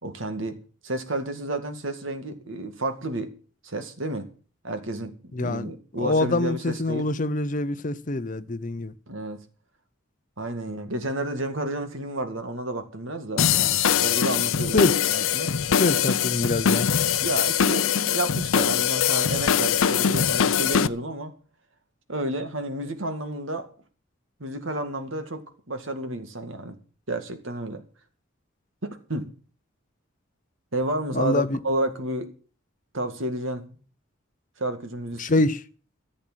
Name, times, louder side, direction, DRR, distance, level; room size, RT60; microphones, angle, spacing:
voice 1, 0.0-3.3 3.6-4.3 4.6-5.1 5.4-7.1 9.1-9.4 10.4-15.5 17.2-21.3 22.1-23.7 24.4-26.8 27.1-27.8 28.8-29.3 30.7-32.3 32.9-33.8 34.6-35.4, right 1 dB, 75° right, 2.1 m, -31 dB
voice 2, 5.3-5.7 6.0-8.9 14.7-14.9 15.8-16.9 31.1-31.6 35.2-35.6, left 2 dB, 40° left, 0.7 m, -25 dB
sound 1, 13.4-20.9, left 8 dB, 85° left, 0.6 m, -22 dB
14.5 x 7.7 x 7.5 m
head